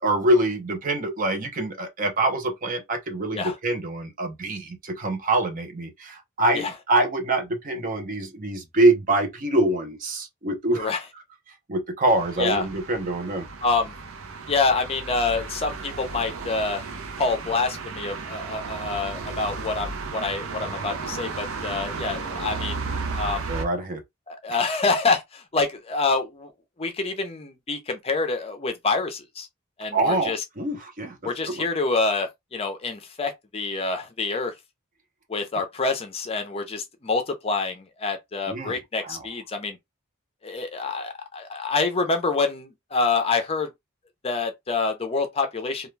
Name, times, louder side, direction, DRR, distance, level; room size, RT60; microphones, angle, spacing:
voice 1, 0.0-10.9 11.7-13.5 23.5-24.0 29.9-31.7 38.5-39.3, right 2 dB, 40° right, 0.7 m, -25 dB
sound 1, 12.0-23.6, right 4 dB, 80° right, 0.6 m, -34 dB
voice 2, 13.6-13.9 14.5-16.8 17.2-23.5 24.3-26.5 26.8-29.5 29.8-30.4 31.2-34.5 35.3-39.8 40.4-43.7 44.2-45.9, left 3 dB, 30° left, 0.5 m, -27 dB
2.3 x 2.2 x 3.1 m
head